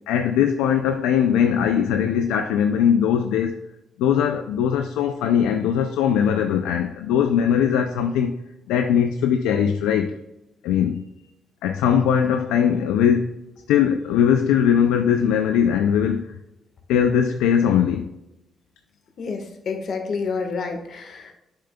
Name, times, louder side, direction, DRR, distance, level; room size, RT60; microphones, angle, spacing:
voice 1, 0.1-3.7 4.0-8.3 8.7-10.1 10.6-11.1 11.6-13.4 13.7-16.4 16.9-18.1, left 8 dB, 90° left, 0.4 m, -20 dB
voice 2, 19.2-21.4, left 4 dB, 60° left, 1.4 m, -29 dB
7.9 x 6.6 x 2.3 m
supercardioid pair, 60°, 0 cm